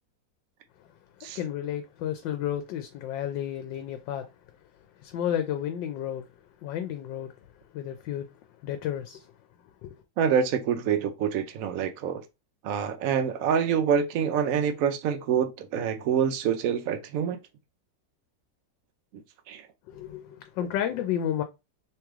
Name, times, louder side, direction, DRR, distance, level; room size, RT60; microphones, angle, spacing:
voice 1, 1.3-4.3 5.0-6.3 6.6-7.3 7.7-8.3 8.6-9.3 9.8-9.9 19.9-21.4, left 10 dB, 85° left, 1.3 m, -32 dB
voice 2, 10.2-12.2 12.6-17.4 19.5-19.6, right 7 dB, 65° right, 0.8 m, -26 dB
3.2 x 3.1 x 3.5 m
omnidirectional pair, 2.0 m